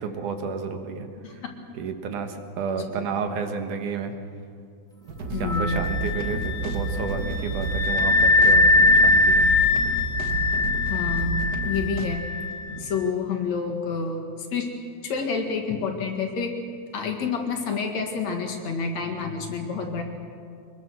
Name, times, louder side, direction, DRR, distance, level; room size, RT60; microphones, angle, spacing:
voice 1, 0.0-1.1 1.7-4.1 5.4-9.5 12.7-12.9, right 5 dB, 80° right, 6 dB, 2.9 m, -31 dB
voice 2, 2.8-3.1 5.3-5.9 10.8-12.3 12.7-14.7 15.0-16.6 16.9-20.0, left 5 dB, 65° left, 3 dB, 3.1 m, -29 dB
sound 1, 5.0-12.0, right 3 dB, 50° right, 1.1 m, -30 dB
Wind instrument woodwind instrument, 5.5-12.9, left 2 dB, ahead, 1.9 m, -22 dB
23.5 x 21.5 x 6.4 m, 2.3 s
omnidirectional pair, 3.6 m